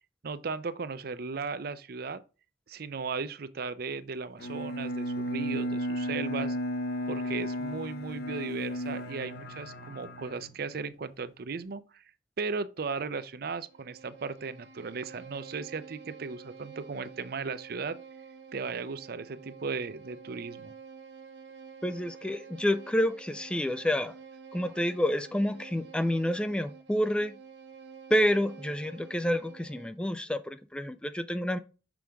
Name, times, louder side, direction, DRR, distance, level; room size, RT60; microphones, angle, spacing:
voice 1, 0.2-2.2 2.7-6.6 7.1-12.0 12.4-18.0 18.5-20.7, right 4 dB, 55° right, 0.5 m, -36 dB
Bowed string instrument, 4.4-11.0, equal, 60° left, 1.0 m, -34 dB
Bowed string instrument 2, 13.6-30.0, right 6 dB, 70° right, 0.9 m, -49 dB
voice 2, 21.8-24.1 24.5-27.3 28.1-31.6, equal, 5° left, 0.3 m, -28 dB
6.1 x 4.9 x 3.4 m
head